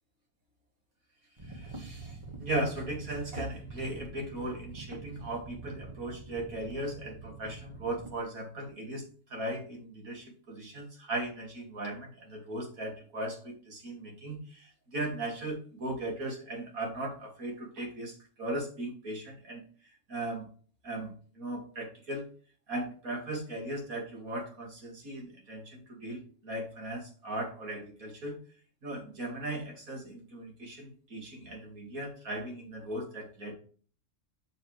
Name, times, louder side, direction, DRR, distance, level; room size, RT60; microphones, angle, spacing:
sound 1, 1.4-8.1, right 3 dB, 20° right, 1.2 m, -45 dB
voice 1, 1.4-18.1 18.4-19.6 20.1-20.5 20.8-22.2 22.7-28.4 28.8-33.5, right 1 dB, 80° right, 0 dB, 2.8 m, -37 dB
7.0 x 6.7 x 3.2 m, 0.42 s
omnidirectional pair, 1.4 m